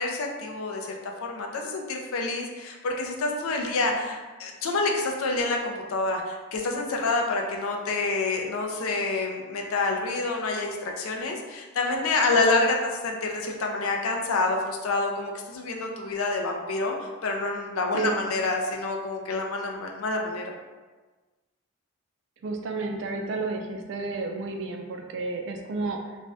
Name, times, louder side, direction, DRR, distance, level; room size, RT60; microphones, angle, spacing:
voice 1, 0.0-20.5, left 3 dB, 80° left, 2 dB, 0.4 m, -28 dB
voice 2, 22.4-26.2, right 3 dB, 60° right, 3 dB, 0.3 m, -31 dB
2.5 x 2.2 x 3.3 m, 1.3 s
head